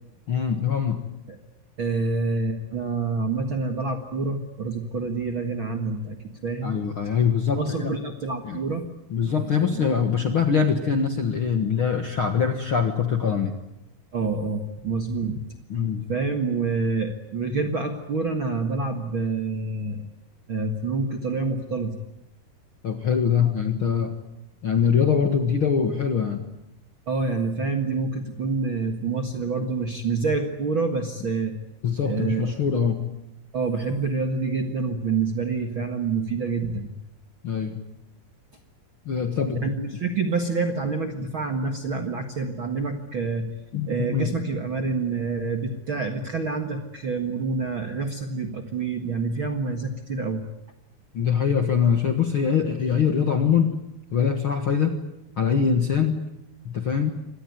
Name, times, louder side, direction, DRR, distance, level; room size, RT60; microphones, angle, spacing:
voice 1, 0.3-1.0 6.6-8.0 8.4-8.6 9.1-13.5 15.7-16.1 22.8-24.2 24.6-26.4 31.8-33.0 37.4-37.8 39.0-39.7 43.7-44.3 51.1-53.8 54.1-55.0 55.4-56.2 56.6-57.1, left 7 dB, 50° left, 6 dB, 1.6 m, -23 dB
voice 2, 1.8-6.2 6.4-6.8 7.5-8.8 9.3-9.8 14.1-15.4 16.1-20.0 20.5-21.9 23.4-23.5 27.1-31.6 32.0-32.5 33.5-36.9 39.6-43.5 43.9-50.4, right 4 dB, 50° right, 5 dB, 1.6 m, -27 dB
25.5 x 19.0 x 9.4 m, 0.86 s
omnidirectional pair, 4.5 m